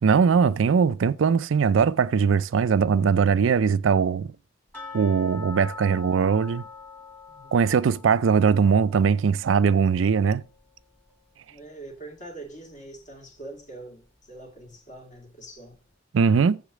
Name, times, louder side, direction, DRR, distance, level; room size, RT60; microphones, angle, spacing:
voice 1, 0.0-4.3 4.9-6.6 7.5-10.4 16.1-16.6, right 6 dB, 90° right, 0.4 m, -20 dB
sound 1, 4.7-11.6 11.9-12.0 12.5-12.6 13.1-13.2, left 4 dB, 10° left, 2.1 m, -44 dB
voice 2, 7.3-7.7 11.5-15.8, right 2 dB, 40° left, 2.3 m, -43 dB
7.3 x 5.0 x 5.8 m
head